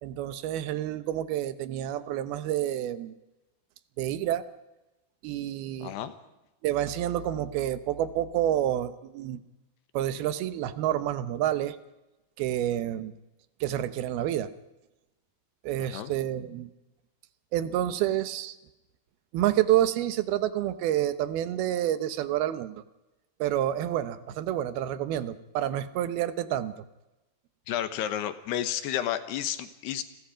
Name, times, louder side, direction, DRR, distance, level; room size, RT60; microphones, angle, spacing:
voice 1, 0.0-3.1 4.0-4.4 5.2-6.0 6.6-9.4 9.9-11.8 12.4-13.1 13.6-14.5 15.6-16.7 17.5-18.6 19.3-22.8 23.4-26.8, right 12 dB, 75° right, 13 dB, 2.8 m, -28 dB
voice 2, 5.8-6.1 15.8-16.1 27.7-30.0, left 11 dB, 85° left, 11 dB, 3.3 m, -31 dB
29.5 x 21.0 x 5.1 m, 1.0 s
omnidirectional pair, 4.6 m